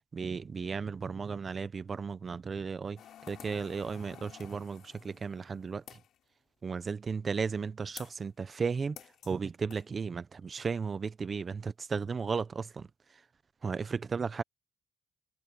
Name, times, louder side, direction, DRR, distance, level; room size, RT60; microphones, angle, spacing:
voice 1, 0.1-3.0 3.3-6.0 6.6-9.0 9.2-12.9 13.6-14.4, right 5 dB, 40° right, 0.9 m, -35 dB
sound 1, 3.0-6.2 8.0-8.2 9.0-9.4 9.7-9.8, left 10 dB, 75° left, 4.6 m, -52 dB
cardioid pair, 90°, 0 cm